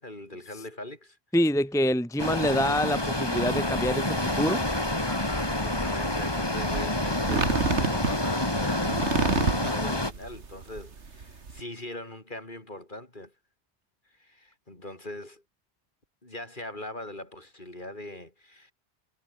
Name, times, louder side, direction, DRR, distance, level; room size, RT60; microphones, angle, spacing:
voice 1, 0.0-1.2 5.0-13.3 14.1-15.4 16.2-18.7, left 1 dB, 45° left, 5.4 m, -41 dB
voice 2, 1.3-4.6, equal, 5° left, 1.2 m, -26 dB
sound 1, 2.2-10.1, left 1 dB, 20° left, 2.9 m, -28 dB
sound 2, 6.0-11.6, right 5 dB, 85° right, 2.2 m, -30 dB
omnidirectional pair, 1.1 m